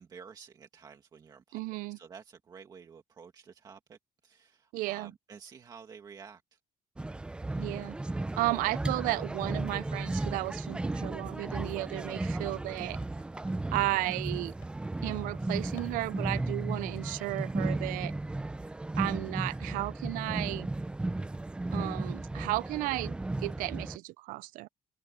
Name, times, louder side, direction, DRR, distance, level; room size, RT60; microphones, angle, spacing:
voice 1, 0.0-4.0 4.2-6.6 12.5-12.7, right 6 dB, 30° right, 2.0 m, -51 dB
voice 2, 1.5-2.0 4.7-5.1 7.6-8.0 8.4-13.0 13.7-14.5 15.0-18.1 19.0-20.7 21.7-23.2 23.4-24.7, right 21 dB, 85° right, 0.5 m, -33 dB
sound 1, 7.0-24.0, right 2 dB, 5° right, 0.5 m, -35 dB
sound 2, 10.8-18.7, left 16 dB, 80° left, 6.3 m, -63 dB
cardioid pair, 170°, 14 cm